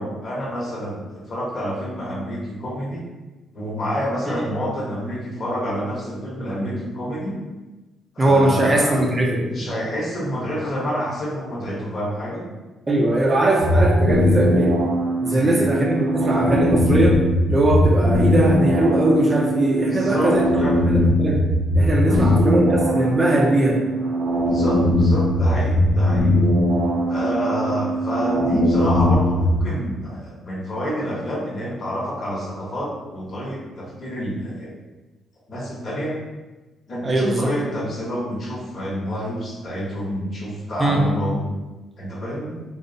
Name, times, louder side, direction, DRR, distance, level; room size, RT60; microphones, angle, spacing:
voice 1, 0.0-3.0 3.5-7.3 8.1-9.0 9.4-12.4 15.2-15.7 19.8-20.8 22.0-22.3 24.5-26.3 27.1-34.7 35.5-36.2 36.9-41.5 42.0-42.6, equal, 45° left, -5 dB, 0.7 m, -28 dB
voice 2, 8.2-9.5 12.9-14.8 15.2-20.4 20.9-21.4 21.7-23.8 37.0-37.5 40.8-41.0, right 1 dB, 30° right, -1 dB, 0.5 m, -20 dB
sound 1, 13.6-29.6, equal, 85° right, 0.5 m, -20 dB
2.6 x 2.0 x 2.5 m, 1.2 s
cardioid pair, 90°, 0 cm